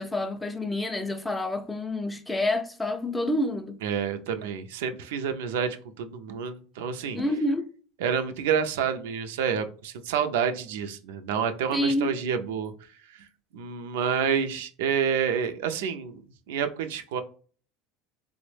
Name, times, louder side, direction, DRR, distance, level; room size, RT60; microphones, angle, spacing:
voice 1, 0.0-3.8 7.1-7.7 11.7-12.1, left 1 dB, 10° left, 0.4 m, -28 dB
voice 2, 3.8-7.2 8.0-12.7 13.5-16.2 16.5-17.2, right 7 dB, 90° right, 0.4 m, -28 dB
3.5 x 2.0 x 3.2 m
supercardioid pair, 115°, 0 cm